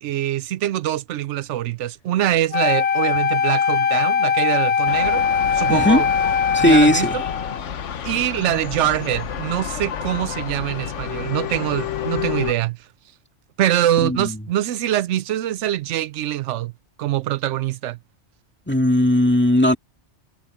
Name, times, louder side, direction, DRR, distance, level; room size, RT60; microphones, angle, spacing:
voice 1, 0.0-5.2 5.5-6.0 6.6-7.1 8.0-12.8 13.6-16.7 17.0-18.0, right 12 dB, 80° right, 0.9 m, -23 dB
Wind instrument woodwind instrument, 2.5-7.6, left 6 dB, 45° left, 0.6 m, -21 dB
sound 1, 4.9-12.5, left 9 dB, 90° left, 1.3 m, -30 dB
voice 2, 5.7-6.0 6.5-7.2 14.0-14.4 18.7-19.7, left 1 dB, 10° left, 2.1 m, -17 dB
omnidirectional pair, 1.2 m